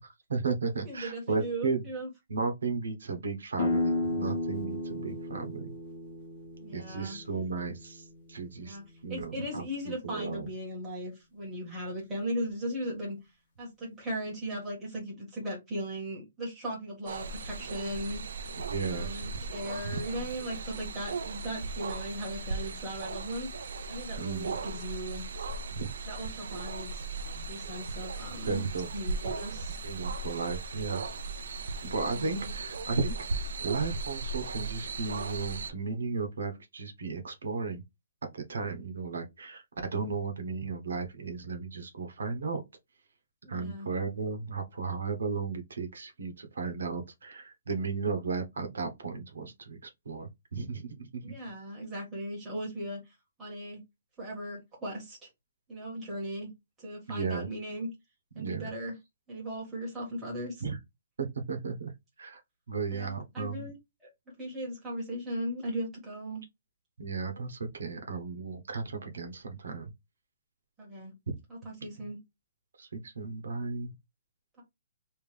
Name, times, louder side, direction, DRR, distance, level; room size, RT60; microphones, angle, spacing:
voice 1, 0.3-1.8 2.3-5.7 6.7-8.8 9.0-10.5 18.7-19.2 19.8-20.0 24.2-24.5 25.8-25.9 28.5-28.9 29.8-31.0 31.8-37.8 38.2-42.6 43.5-51.3 57.1-57.5 58.4-58.7 60.6-60.8 61.2-61.9 62.2-62.4 62.7-63.7 67.0-69.9 72.0-72.1 72.8-73.9, right 4 dB, 90° right, 1.0 m, -35 dB
voice 2, 0.8-2.1 6.6-7.2 8.6-8.8 9.1-13.2 13.6-18.2 18.9-25.3 26.0-27.0 27.5-28.6 28.9-29.8 32.0-32.5 43.4-43.9 51.2-53.0 53.4-53.8 54.2-55.2 55.7-56.5 56.8-57.9 58.3-59.0 59.3-60.6 62.9-63.7 64.4-66.4 70.8-71.1 71.5-72.2, equal, 10° right, 1.6 m, -37 dB
sound 1, 3.6-9.1, left 2 dB, 25° left, 0.8 m, -34 dB
sound 2, 17.1-35.7, right 3 dB, 55° right, 0.5 m, -37 dB
3.4 x 2.6 x 3.4 m
hypercardioid pair, 180°, 0 cm